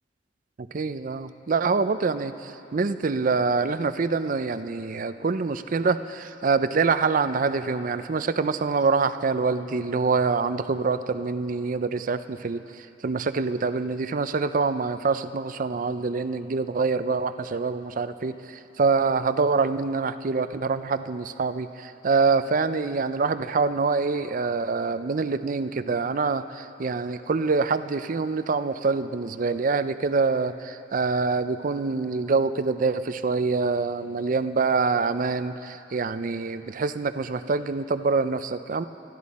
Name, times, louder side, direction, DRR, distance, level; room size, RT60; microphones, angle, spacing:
voice 1, 0.6-38.8, right 4 dB, 50° right, 12 dB, 0.5 m, -25 dB
25.0 x 13.0 x 4.2 m, 2.9 s
head